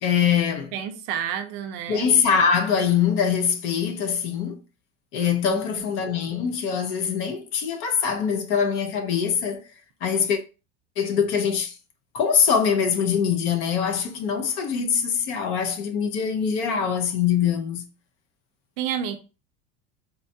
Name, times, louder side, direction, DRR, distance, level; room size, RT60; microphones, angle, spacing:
voice 1, 0.0-0.7 1.9-4.6 5.1-9.6 10.0-10.4 11.0-11.7 12.1-17.9, left 7 dB, 45° left, 0.5 m, -23 dB
voice 2, 0.7-2.1 5.5-5.6 18.8-19.2, right 9 dB, 45° right, 0.5 m, -29 dB
4.1 x 2.3 x 2.6 m
cardioid pair, 180°, 30 cm